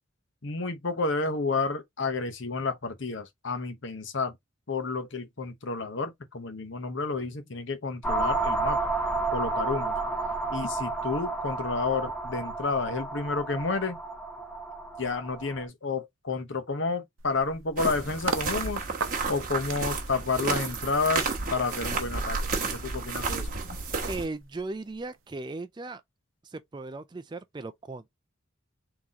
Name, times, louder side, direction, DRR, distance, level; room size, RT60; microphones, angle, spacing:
voice 1, 0.4-4.3 4.7-8.8 9.3-10.0 10.5-14.0 15.0-18.8 19.3-23.8, left 4 dB, 60° left, 0.9 m, -30 dB
sound 1, 8.0-15.6, right 3 dB, 5° left, 0.7 m, -31 dB
sound 2, 17.2-18.5 19.0-24.6 24.9-25.2, right 3 dB, 70° right, 0.7 m, -37 dB
sound 3, 17.8-24.3, right 4 dB, 40° right, 1.1 m, -32 dB
voice 2, 24.1-26.0 26.4-28.1, right 3 dB, 20° right, 0.3 m, -37 dB
3.9 x 2.9 x 3.6 m
head